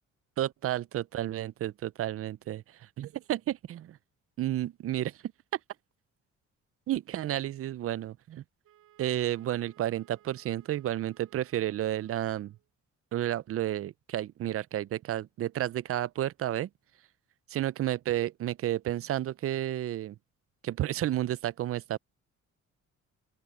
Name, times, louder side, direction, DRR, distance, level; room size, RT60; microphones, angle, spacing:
voice 1, 0.4-4.0 4.4-5.3 6.9-8.4 9.0-12.6 13.1-16.7 17.5-20.1 20.6-22.0, right 13 dB, 50° right, 0.5 m, -31 dB
Wind instrument woodwind instrument, 8.6-12.7, right 12 dB, 70° right, 4.0 m, -62 dB
open air
cardioid pair, 130°, 30 cm